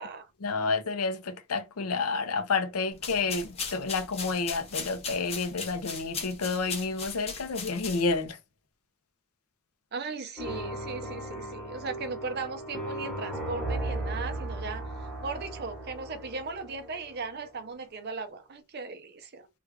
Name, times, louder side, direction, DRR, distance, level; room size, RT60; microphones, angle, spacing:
voice 1, 0.4-8.4, left 4 dB, 80° left, 0.6 m, -30 dB
sound 1, 2.9-8.3, left 5 dB, 30° left, 0.7 m, -38 dB
voice 2, 9.9-14.9 15.2-19.5, right 4 dB, 45° right, 0.5 m, -37 dB
sound 2, 10.4-17.5, right 1 dB, 5° left, 1.1 m, -36 dB
3.3 x 2.3 x 3.4 m
head